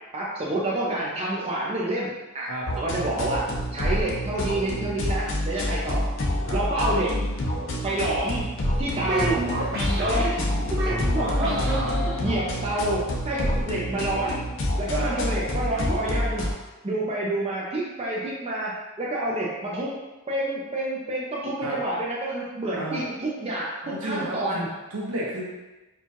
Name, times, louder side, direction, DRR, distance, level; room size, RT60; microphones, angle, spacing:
voice 1, 0.1-2.5 2.8-3.4 3.7-6.1 6.5-7.1 7.8-8.4 8.8-9.4 10.0-11.9 12.2-14.4 14.8-16.4 16.8-19.9 20.3-23.7 24.0-24.7, right 1 dB, 30° right, -5 dB, 0.5 m, -28 dB
sound 1, 2.6-16.5, left 1 dB, 60° left, 0.6 m, -28 dB
sound 2, 5.4-5.6 6.9-7.8 8.9-9.5 10.8-12.6 13.3-13.7 14.9-15.4, right 1 dB, 10° left, 1.2 m, -39 dB
sound 3, 8.9-12.5, right 1 dB, 50° right, 1.1 m, -29 dB
voice 2, 11.2-12.2 14.9-15.1 21.6-21.8 22.8-23.0 23.8-25.4, right 1 dB, 80° right, -5 dB, 1.0 m, -33 dB
4.4 x 2.3 x 2.9 m, 1.1 s
head